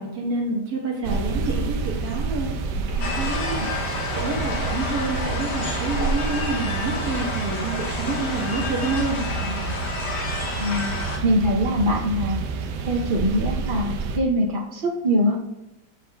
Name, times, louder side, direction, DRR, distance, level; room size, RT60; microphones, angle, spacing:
voice 1, 0.0-9.7, right 2 dB, 65° right, -2 dB, 1.6 m, -28 dB
sound 1, 1.0-14.2, right 4 dB, 80° right, 1.2 m, -29 dB
sound 2, 3.0-11.2, left 3 dB, 50° left, 0.9 m, -30 dB
voice 2, 10.6-10.9 11.2-12.4 12.8-15.4, equal, 45° right, 1 dB, 0.7 m, -23 dB
7.4 x 6.4 x 2.3 m, 0.91 s
omnidirectional pair, 1.8 m